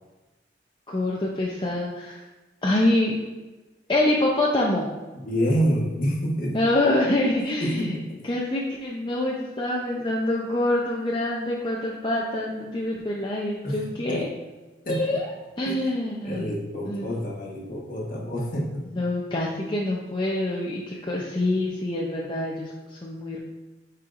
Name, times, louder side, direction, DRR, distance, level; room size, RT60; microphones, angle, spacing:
voice 1, 0.9-2.2 2.6-3.1 3.9-4.9 6.5-8.0 8.2-14.3 14.9-15.3 15.6-16.6 16.8-17.1 18.9-22.7 23.0-23.4, left 1 dB, 25° left, -3 dB, 0.6 m, -25 dB
voice 2, 5.1-6.6 7.6-8.3 13.6-14.2 14.8-15.2 15.6-15.9 16.2-18.8 20.9-21.0, equal, 45° left, -1 dB, 1.2 m, -28 dB
8.7 x 4.4 x 2.5 m, 1.2 s
head